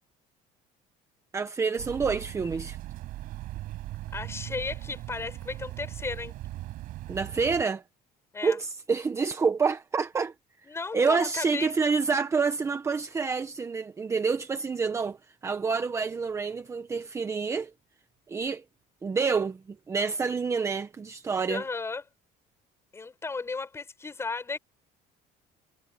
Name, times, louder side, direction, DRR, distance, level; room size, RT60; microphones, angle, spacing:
voice 1, 1.3-2.8 7.1-7.8 8.4-10.3 10.9-15.2 15.4-17.7 18.3-18.6 19.0-21.6, right 5 dB, 15° right, 0.9 m, -28 dB
sound 1, 1.8-7.6, right 16 dB, 60° right, 4.5 m, -39 dB
voice 2, 4.1-6.4 8.3-8.6 10.6-11.7 21.5-22.0 22.9-24.6, left 4 dB, 15° left, 6.9 m, -34 dB
cardioid pair, 165°, 16 cm